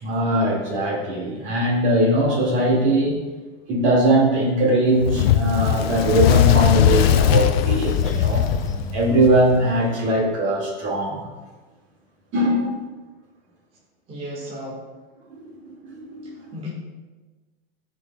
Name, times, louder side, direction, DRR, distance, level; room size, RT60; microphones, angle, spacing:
voice 1, 0.0-3.2 3.7-8.5 8.9-11.3 12.3-12.8 15.3-16.4, right 1 dB, 40° right, -2 dB, 2.2 m, -21 dB
Fire, 5.0-9.6, left 10 dB, 75° left, 0.5 m, -19 dB
sound 1, 6.7-9.5, left 1 dB, 10° left, 0.5 m, -37 dB
voice 2, 14.1-14.8 16.2-16.7, left 1 dB, 20° right, -5 dB, 1.7 m, -34 dB
14.0 x 5.3 x 2.3 m, 1.3 s
supercardioid pair, 135°, 30 cm